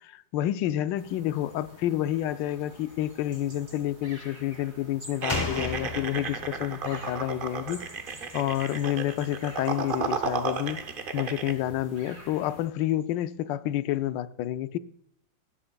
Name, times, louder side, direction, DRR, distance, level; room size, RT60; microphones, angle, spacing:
voice 1, 0.1-7.8 8.3-10.8 11.1-14.8, left 12 dB, 75° left, 1.2 m, -29 dB
sound 1, 1.0-12.7, right 1 dB, 25° right, 3.9 m, -50 dB
sound 2, 5.2-11.5, right 5 dB, 85° right, 0.4 m, -33 dB
Slam, 5.3-8.8 9.1-9.2, left 3 dB, 30° left, 0.4 m, -36 dB
16.5 x 8.7 x 2.3 m
omnidirectional pair, 2.1 m